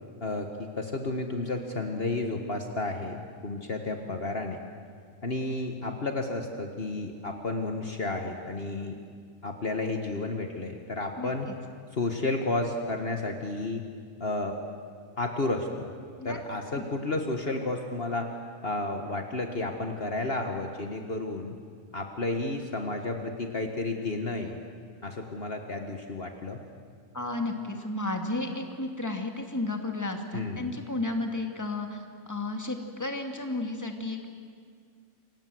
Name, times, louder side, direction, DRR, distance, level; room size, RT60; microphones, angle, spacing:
voice 1, 0.2-4.6 5.2-9.0 9.4-11.5 11.9-13.8 14.2-14.6 15.2-15.9 16.3-18.3 18.6-21.6 21.9-24.6 25.0-26.6 30.3-30.8, left 2 dB, 45° left, 4 dB, 1.8 m, -32 dB
voice 2, 11.2-11.5 16.2-16.4 16.8-16.9 27.1-34.3, left 2 dB, 15° left, 3 dB, 2.3 m, -33 dB
28.0 x 25.0 x 7.8 m, 2.1 s
omnidirectional pair, 1.4 m